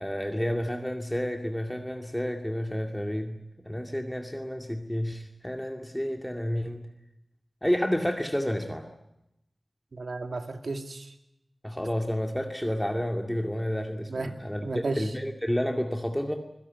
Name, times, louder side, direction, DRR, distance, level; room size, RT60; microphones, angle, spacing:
voice 1, 0.0-3.4 3.6-6.9 7.6-8.9 11.6-16.4, equal, 5° left, 4 dB, 2.3 m, -30 dB
voice 2, 9.9-11.1 14.1-15.2, right 3 dB, 75° right, 6 dB, 2.5 m, -34 dB
26.5 x 16.5 x 9.6 m, 0.87 s
wide cardioid pair, 50°, 0 cm